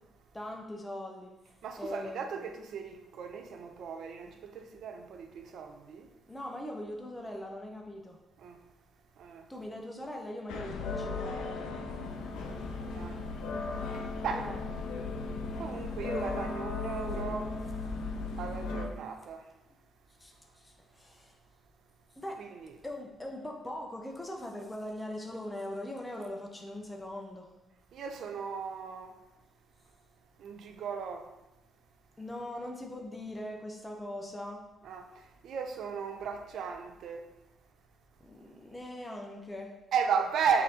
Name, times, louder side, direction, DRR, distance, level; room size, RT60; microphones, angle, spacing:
voice 1, 0.3-1.3 1.8-2.4 6.3-8.2 9.5-11.7 14.3-14.6 20.2-21.3 22.2-22.4 22.8-27.5 32.2-34.6 38.2-39.7, left 1 dB, 15° left, 0.6 m, -41 dB
voice 2, 1.6-6.1 8.4-8.6 9.2-9.5 12.9-13.2 13.9-14.5 15.6-17.5 18.4-19.5 22.4-22.7 27.9-29.1 30.4-31.3 34.8-37.3 39.9-40.6, right 6 dB, 70° right, 0.5 m, -35 dB
sound 1, 10.5-18.9, left 3 dB, 90° left, 0.5 m, -36 dB
4.2 x 2.7 x 3.7 m
cardioid pair, 90°, 0 cm